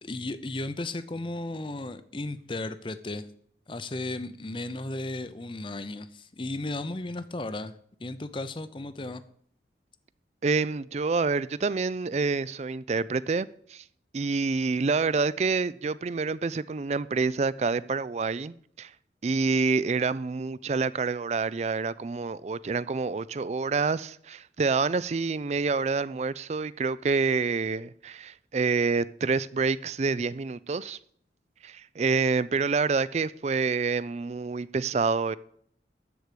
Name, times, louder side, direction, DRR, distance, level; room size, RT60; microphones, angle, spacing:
voice 1, 0.0-3.3 3.7-7.7 8.0-9.2, left 2 dB, 30° left, 0.6 m, -35 dB
voice 2, 10.4-13.8 14.1-18.9 19.2-31.0 31.6-35.4, right 4 dB, 40° right, 0.4 m, -27 dB
13.0 x 4.7 x 8.5 m
head